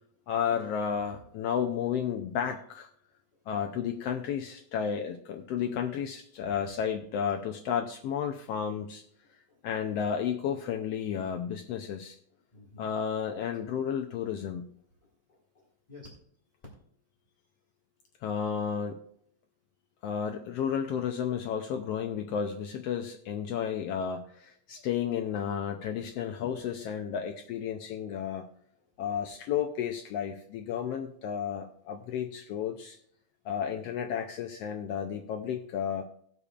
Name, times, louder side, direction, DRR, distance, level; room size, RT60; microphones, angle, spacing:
voice 1, 0.3-2.9 3.5-9.0 9.6-12.2 12.8-14.7 18.2-19.0 20.0-28.5 29.0-33.0 33.4-36.0, left 8 dB, 75° left, 4 dB, 1.5 m, -32 dB
voice 2, 3.5-3.9 6.6-6.7 9.2-9.6 12.5-12.9 15.3-16.1, left 2 dB, 15° left, -4 dB, 1.5 m, -52 dB
19.0 x 6.8 x 2.4 m, 0.65 s
omnidirectional pair, 3.3 m